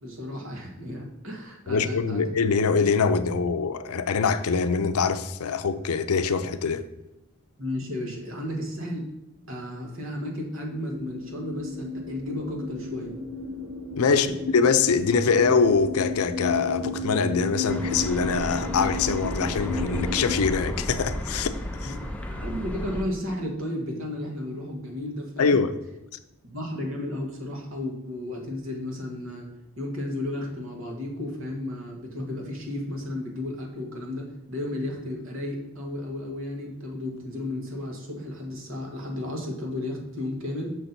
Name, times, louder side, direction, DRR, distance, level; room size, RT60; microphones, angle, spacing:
voice 1, 0.0-2.2 7.6-9.0 9.5-13.1 14.1-14.3 21.8-25.6 26.4-29.5 29.8-40.7, left 1 dB, 65° right, 1.5 m, -33 dB
voice 2, 1.7-6.9 14.0-21.5 21.8-21.9 25.4-25.7, left 5 dB, 85° left, 0.5 m, -23 dB
sound 1, 10.6-20.4, left 2 dB, 45° right, 0.8 m, -33 dB
sound 2, 17.7-23.0, equal, 5° left, 0.4 m, -33 dB
6.2 x 4.0 x 5.8 m
head